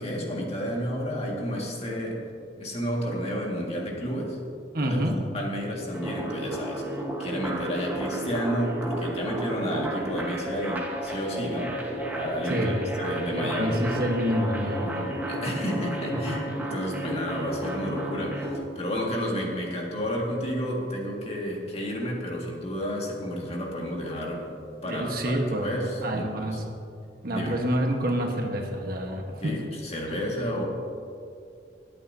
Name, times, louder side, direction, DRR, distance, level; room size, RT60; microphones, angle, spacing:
voice 1, 0.0-2.2 2.6-4.4 4.8-5.0 5.3-6.8 7.2-12.7 13.0-13.8 15.3-16.4 16.7-24.6 24.8-26.6 27.3-27.6 29.4-30.6, equal, 35° left, -2 dB, 1.9 m, -31 dB
voice 2, 4.7-5.2 12.4-12.8 13.3-15.1 16.1-16.2 24.8-25.7 26.0-26.6 27.2-29.6 30.1-30.2, equal, 55° right, 2 dB, 1.2 m, -28 dB
sound 1, 5.9-18.6, right 1 dB, 10° right, 1.3 m, -32 dB
21.0 x 8.6 x 2.7 m, 2.5 s
head